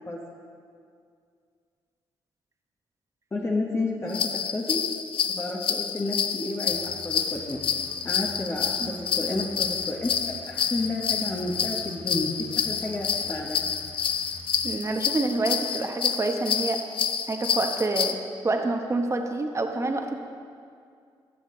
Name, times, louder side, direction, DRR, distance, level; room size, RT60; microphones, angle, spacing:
voice 1, 3.3-4.8 5.3-7.6 8.0-13.6, left 2 dB, 30° left, -2 dB, 1.2 m, -31 dB
sound 1, 4.1-18.1, left 7 dB, 65° left, 0.5 m, -28 dB
sound 2, 6.6-14.8, left 3 dB, 90° left, 1.6 m, -48 dB
voice 2, 14.6-16.8 17.3-18.2 18.4-20.1, right 2 dB, 30° right, 4 dB, 1.0 m, -27 dB
15.0 x 6.5 x 3.8 m, 2.3 s
cardioid pair, 60°, 10 cm